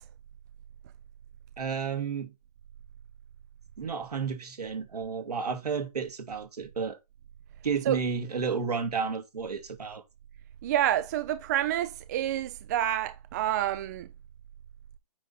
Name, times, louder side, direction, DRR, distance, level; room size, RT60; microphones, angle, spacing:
voice 1, 1.6-2.3 3.8-7.0 7.6-10.0, right 5 dB, 80° right, 2.1 m, -32 dB
voice 2, 10.6-14.1, right 12 dB, 30° right, 0.4 m, -28 dB
8.7 x 3.8 x 4.2 m
hypercardioid pair, 145°, 20 cm